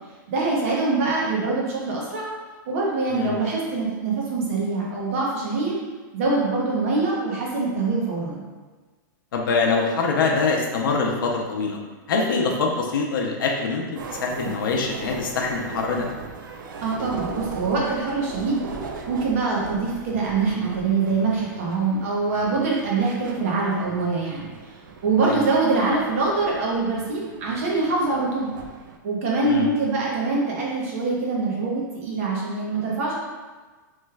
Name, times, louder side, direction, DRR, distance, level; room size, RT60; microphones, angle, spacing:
voice 1, 0.3-2.3 2.7-5.8 6.1-8.4 16.8-18.6 19.1-24.5 25.0-28.5 29.0-33.2, right 3 dB, 45° right, -4 dB, 0.8 m, -24 dB
voice 2, 9.3-11.8 12.1-16.1 25.2-25.4 29.4-29.7, left 4 dB, 85° left, 0 dB, 0.5 m, -24 dB
sound 1, 14.0-29.0, right 4 dB, 75° right, 0.4 m, -39 dB
3.1 x 2.2 x 3.2 m, 1.3 s
supercardioid pair, 175°, 11 cm